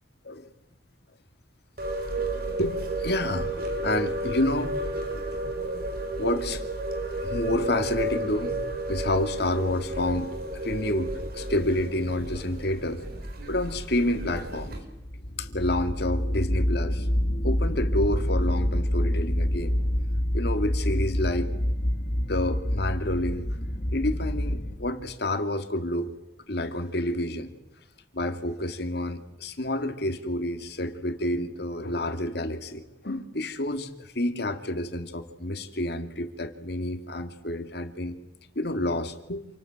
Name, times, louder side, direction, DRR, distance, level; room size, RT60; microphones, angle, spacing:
sound 1, 1.8-14.8, right 1 dB, 60° right, 4.3 m, -32 dB
voice 1, 2.5-4.8 6.2-6.6 7.2-8.6 8.9-13.0 13.5-14.8 15.4-17.1 17.4-19.8 20.3-21.5 22.3-23.5 23.9-26.1 26.5-27.5 28.1-38.2 38.5-39.5, left 1 dB, 65° left, 8 dB, 2.5 m, -29 dB
sound 2, 14.9-24.8, equal, 50° left, 2.2 m, -27 dB
28.0 x 19.5 x 8.9 m, 0.92 s
head